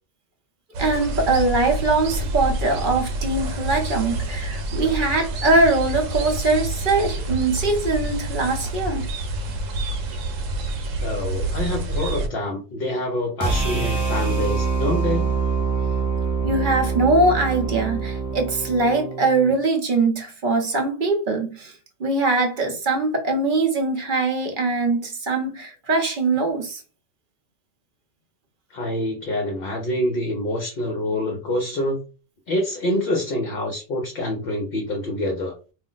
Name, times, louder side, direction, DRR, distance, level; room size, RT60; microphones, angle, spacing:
sound 1, 0.7-12.3, right 2 dB, 85° right, 1.0 m, -28 dB
voice 1, 0.8-9.1 16.4-26.8, right 3 dB, 50° right, 0.7 m, -22 dB
voice 2, 11.0-15.3 28.7-32.0 32.5-35.6, left 1 dB, 55° left, 0.7 m, -26 dB
sound 2, 13.4-19.5, right 5 dB, 25° right, 0.5 m, -25 dB
2.5 x 2.0 x 3.8 m
omnidirectional pair, 1.3 m